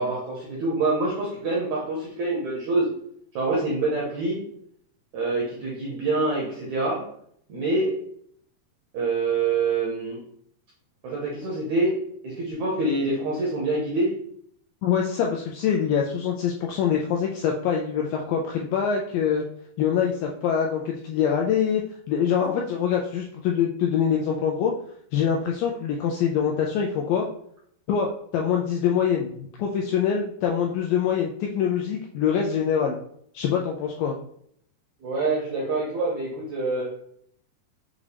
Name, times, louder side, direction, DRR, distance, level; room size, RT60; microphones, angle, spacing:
voice 1, 0.0-2.9 3.3-4.4 5.1-7.0 7.5-8.0 8.9-10.2 11.0-14.1 35.0-37.0, right 2 dB, 80° right, -3 dB, 1.6 m, -26 dB
voice 2, 14.8-19.4 19.8-21.8 22.1-24.7 25.1-27.3 27.9-29.3 29.6-33.0 33.3-34.1, left 7 dB, 85° left, 0 dB, 2.0 m, -24 dB
6.5 x 2.4 x 3.3 m, 0.66 s
omnidirectional pair, 4.4 m